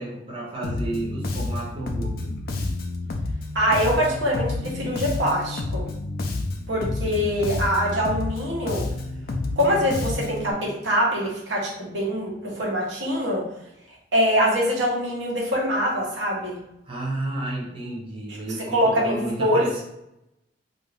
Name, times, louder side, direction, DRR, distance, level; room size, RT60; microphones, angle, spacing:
voice 1, 0.0-2.3 16.9-19.8, right 2 dB, 30° right, -4 dB, 0.6 m, -31 dB
Bass guitar, 0.6-10.5, left 2 dB, 55° left, 0.4 m, -30 dB
voice 2, 3.5-5.9 6.7-8.8 9.6-13.4 14.1-16.6 18.6-19.8, equal, 85° right, -4 dB, 1.0 m, -24 dB
2.6 x 2.4 x 3.2 m, 0.83 s
head